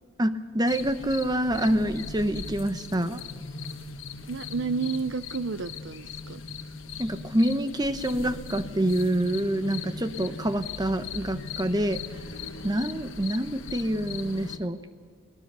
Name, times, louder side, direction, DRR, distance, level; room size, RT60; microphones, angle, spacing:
voice 1, 0.2-3.2 7.0-12.0 12.6-14.8, right 1 dB, 20° right, 11 dB, 0.8 m, -26 dB
sound 1, 0.7-14.6, left 4 dB, 60° left, 1.5 m, -39 dB
voice 2, 4.3-6.4, right 4 dB, 55° right, 16 dB, 0.6 m, -31 dB
23.5 x 18.5 x 6.8 m, 2.1 s
head